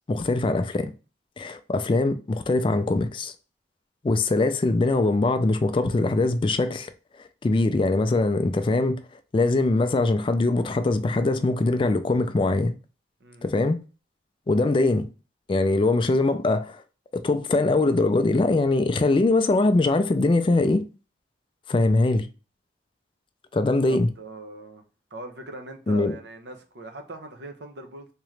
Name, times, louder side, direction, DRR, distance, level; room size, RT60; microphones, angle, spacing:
voice 1, 0.1-0.9 1.4-3.3 4.0-6.9 7.4-9.0 9.3-12.7 13.4-13.8 14.5-15.1 15.5-16.8 17.1-20.8 21.7-22.3 23.5-24.1 25.9-26.1, left 2 dB, 30° left, 0.3 m, -22 dB
voice 2, 13.2-13.5 23.6-24.8 25.1-28.1, right 1 dB, 70° right, 0.8 m, -41 dB
3.6 x 2.9 x 3.2 m
head